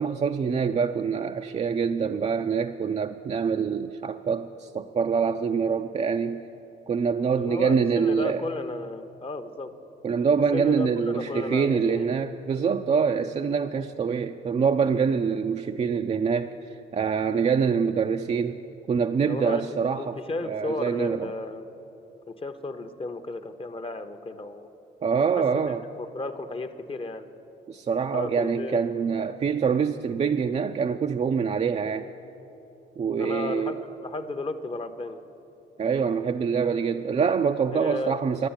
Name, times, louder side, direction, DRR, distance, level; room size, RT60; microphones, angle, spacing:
voice 1, 0.0-6.4 6.9-8.4 10.0-18.6 18.9-20.2 20.5-21.3 25.0-25.8 27.7-32.1 33.0-33.8 35.8-38.5, right 6 dB, 35° right, 6 dB, 0.4 m, -25 dB
voice 2, 7.3-9.7 10.5-12.1 19.3-19.6 20.0-21.6 22.3-24.7 25.4-27.2 28.1-28.8 33.2-35.2 37.7-38.2, left 2 dB, 25° left, 8 dB, 0.7 m, -34 dB
11.5 x 9.4 x 8.7 m, 2.9 s
cardioid pair, 90°, 20 cm